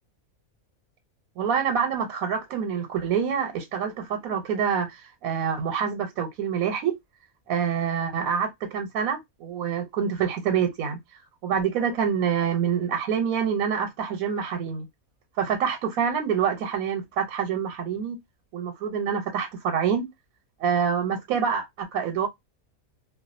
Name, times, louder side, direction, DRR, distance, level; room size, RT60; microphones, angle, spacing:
voice 1, 1.4-6.9 7.5-11.0 11.4-14.9 15.4-18.2 18.5-20.1 20.6-22.3, right 7 dB, 90° right, 1.1 m, -26 dB
2.4 x 2.2 x 2.4 m
omnidirectional pair, 1.5 m